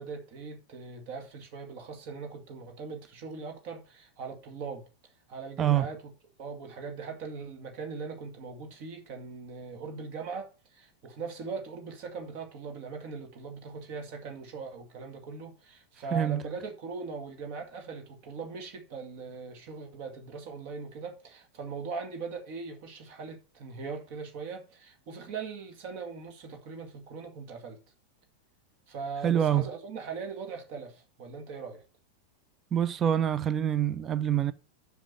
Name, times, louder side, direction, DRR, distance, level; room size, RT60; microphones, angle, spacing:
voice 1, 0.0-4.8 5.3-6.0 6.4-27.8 28.9-31.8, right 5 dB, 45° right, 2.1 m, -40 dB
voice 2, 16.1-16.4 29.2-29.7 32.7-34.5, right 10 dB, 25° right, 0.7 m, -26 dB
7.3 x 6.0 x 6.9 m
figure-of-eight pair, 90°, 0 cm